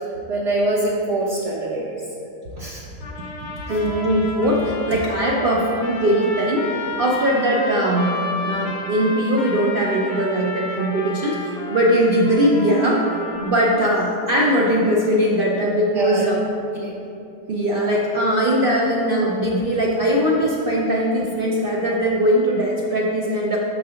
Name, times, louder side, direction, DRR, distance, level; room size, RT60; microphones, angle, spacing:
voice 1, 0.3-2.0 2.6-2.8 3.7-3.8 5.3-5.5 15.9-16.2 16.8-16.9, right 2 dB, 60° right, -3 dB, 0.8 m, -24 dB
sound 1, 3.0-14.0, left 2 dB, 60° left, 0.7 m, -32 dB
voice 2, 3.4-6.7 7.0-8.2 8.4-13.0 13.4-16.4 17.5-23.6, equal, 80° right, -3 dB, 0.5 m, -20 dB
6.2 x 3.7 x 5.5 m, 2.7 s
omnidirectional pair, 1.7 m